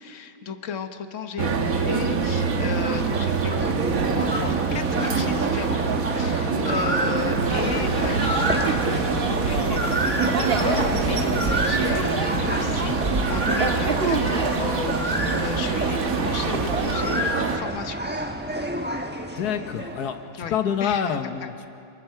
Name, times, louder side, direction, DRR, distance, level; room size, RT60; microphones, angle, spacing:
voice 1, 0.0-3.5 4.1-5.8 6.2-18.0 20.4-21.5, left 6 dB, 50° left, 8 dB, 1.2 m, -34 dB
sound 1, 1.4-17.6, right 5 dB, 55° right, 1.5 m, -25 dB
sound 2, 2.0-20.2, right 1 dB, 10° right, 0.8 m, -30 dB
sound 3, 7.4-17.2, right 3 dB, 30° right, 1.6 m, -28 dB
voice 2, 19.3-21.7, left 7 dB, 65° left, 7 dB, 1.6 m, -27 dB
29.0 x 21.0 x 4.7 m, 2.6 s
omnidirectional pair, 1.9 m